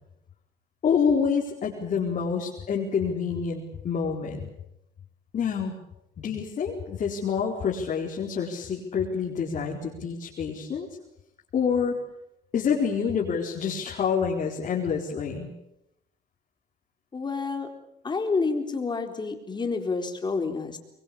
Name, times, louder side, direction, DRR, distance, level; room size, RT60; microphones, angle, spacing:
voice 1, 0.8-4.4 5.3-5.8 6.2-10.9 11.5-12.0 12.5-15.5, left 6 dB, 45° left, -2 dB, 4.5 m, -27 dB
voice 2, 17.1-17.7 18.0-20.8, left 4 dB, 25° left, 5 dB, 4.2 m, -29 dB
25.0 x 22.5 x 8.7 m, 0.84 s
cardioid pair, 110°, 17 cm